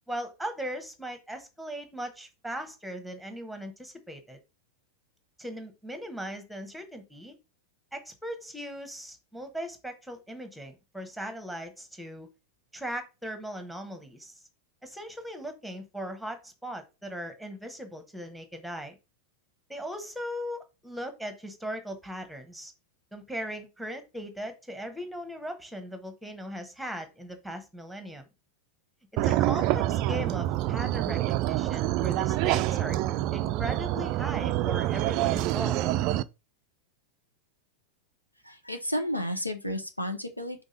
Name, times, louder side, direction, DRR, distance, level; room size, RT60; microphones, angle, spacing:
voice 1, 0.1-4.4 5.4-7.3 7.9-12.3 12.7-14.4 14.8-18.9 19.7-22.7 23.1-28.3 29.2-33.0 33.3-35.8, equal, ahead, 1.2 m, -38 dB
sound 1, 29.2-36.2, right 14 dB, 40° right, 0.3 m, -27 dB
voice 2, 38.4-40.6, equal, 90° left, 0.9 m, -32 dB
5.3 x 3.6 x 5.2 m
figure-of-eight pair, 90°, 0 cm